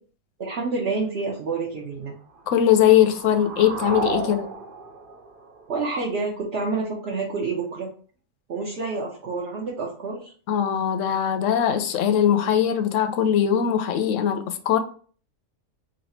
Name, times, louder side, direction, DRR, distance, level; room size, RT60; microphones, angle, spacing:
voice 1, 0.4-2.2 5.7-7.9 8.5-10.3, right 4 dB, 50° right, 1.0 m, -28 dB
sound 1, 2.3-6.3, right 3 dB, 75° right, 0.5 m, -34 dB
voice 2, 2.5-4.5 10.5-14.8, left 9 dB, 70° left, 0.8 m, -21 dB
3.2 x 2.6 x 4.1 m
omnidirectional pair, 1.6 m